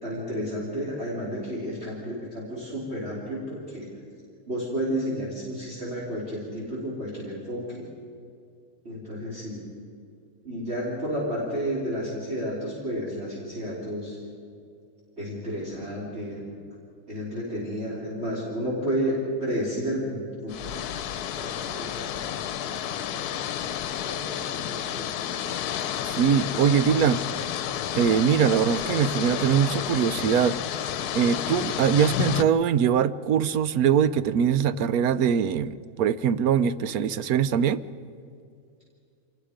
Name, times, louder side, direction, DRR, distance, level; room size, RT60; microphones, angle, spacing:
voice 1, 0.0-3.9 4.5-7.9 8.9-9.7 10.4-14.2 15.2-16.6 17.1-21.0 21.4-23.3 24.0-25.6 26.0-26.6, equal, 40° right, -6 dB, 3.7 m, -32 dB
sound 1, 20.5-32.4, left 10 dB, 80° left, 1.2 m, -31 dB
voice 2, 26.2-27.2 28.0-37.8, right 8 dB, 70° right, 14 dB, 1.1 m, -22 dB
26.0 x 19.5 x 5.1 m, 2.4 s
omnidirectional pair, 1.7 m